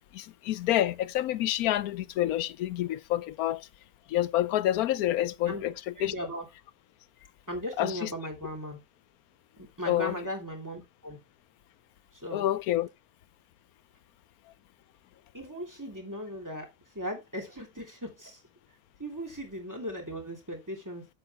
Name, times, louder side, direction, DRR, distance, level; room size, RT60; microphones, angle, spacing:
voice 1, 0.0-3.7 4.1-6.1 7.8-8.1 9.9-10.2 12.3-12.9, left 13 dB, 80° left, 1.1 m, -28 dB
voice 2, 5.5-6.5 7.5-8.8 9.6-11.2 12.1-12.4 15.3-18.4 19.0-21.1, equal, 10° right, 2.7 m, -38 dB
9.5 x 7.5 x 3.1 m
omnidirectional pair, 1.5 m